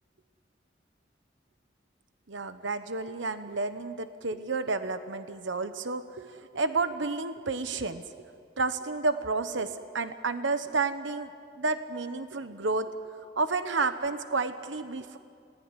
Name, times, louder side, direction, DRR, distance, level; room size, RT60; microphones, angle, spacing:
voice 1, 2.3-8.0 8.6-11.3 11.6-12.9 13.4-15.2, right 3 dB, 90° right, 10 dB, 1.1 m, -31 dB
27.5 x 18.5 x 9.9 m, 2.3 s
head